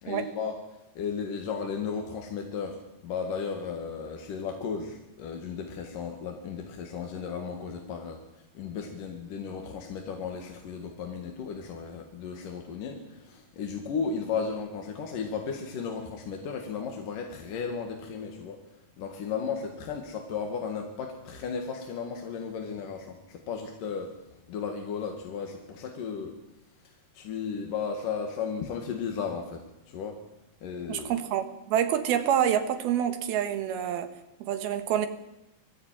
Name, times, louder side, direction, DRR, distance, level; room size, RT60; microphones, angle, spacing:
voice 1, 0.0-0.6 1.0-18.6 19.0-24.1 24.5-26.3 27.1-30.2 30.6-31.2, left 6 dB, 60° left, 3 dB, 3.3 m, -35 dB
voice 2, 30.9-34.1 34.4-35.1, right 9 dB, 75° right, 8 dB, 3.3 m, -27 dB
23.0 x 14.5 x 9.1 m, 0.97 s
omnidirectional pair, 4.7 m